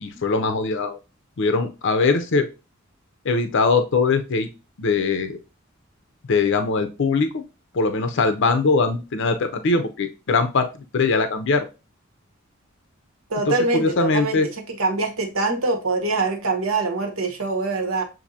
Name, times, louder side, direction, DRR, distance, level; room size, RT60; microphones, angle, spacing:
voice 1, 0.0-1.0 1.4-2.5 3.2-4.5 4.8-5.4 6.3-7.4 7.7-10.7 10.9-11.7 13.5-14.5, left 4 dB, 60° left, 8 dB, 0.5 m, -21 dB
voice 2, 13.3-14.4 14.7-18.0, right 3 dB, 80° right, 4 dB, 1.1 m, -24 dB
7.2 x 2.6 x 2.7 m, 0.29 s
head